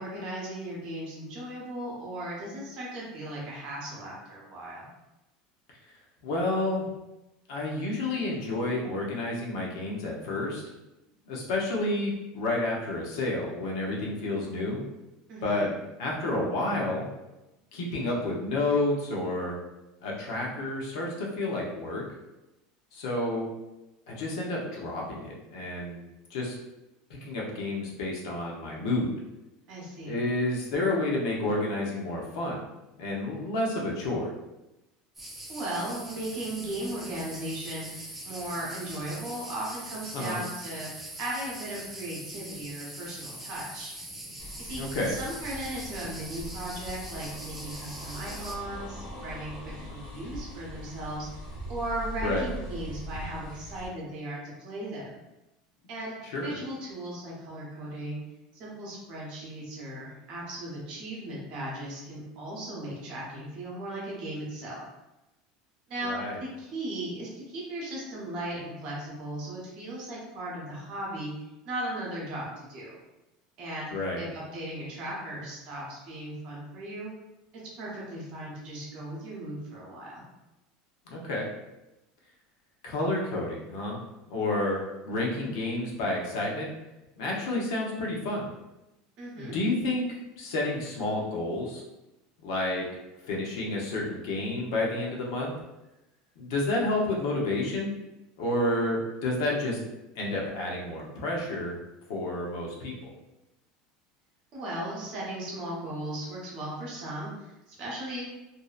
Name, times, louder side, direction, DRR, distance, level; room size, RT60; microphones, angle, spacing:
voice 1, 0.0-4.9 15.3-15.7 29.7-30.2 35.5-43.9 44.6-44.8 45.1-51.4 51.7-55.2 55.9-56.1 56.4-58.2 58.5-64.8 65.9-66.1 66.4-72.9 73.6-73.9 74.2-77.1 77.8-80.2 89.2-89.5 104.5-108.2, right 1 dB, 40° right, -5 dB, 0.8 m, -37 dB
voice 2, 6.2-6.9 7.5-10.6 11.3-14.8 15.4-15.7 16.0-17.0 17.7-19.6 20.0-22.0 22.9-23.5 24.1-26.0 26.3-26.6 27.2-29.1 30.0-32.6 33.0-34.3 40.1-40.4 44.7-45.2 52.2-52.5 56.2-56.6 66.0-66.4 73.9-74.2 81.1-81.5 82.8-84.0 84.3-86.7 87.2-88.5 89.4-91.8 92.4-92.8 93.3-95.5 96.4-97.9 98.4-99.8 100.2-101.7 102.1-103.1, left 2 dB, 85° left, -2 dB, 0.7 m, -30 dB
sound 1, 35.1-48.5, right 1 dB, 5° right, 0.4 m, -42 dB
sound 2, 44.4-53.9, equal, 45° left, 0.7 m, -41 dB
2.6 x 2.0 x 2.4 m, 0.97 s
cardioid pair, 175°, 3 cm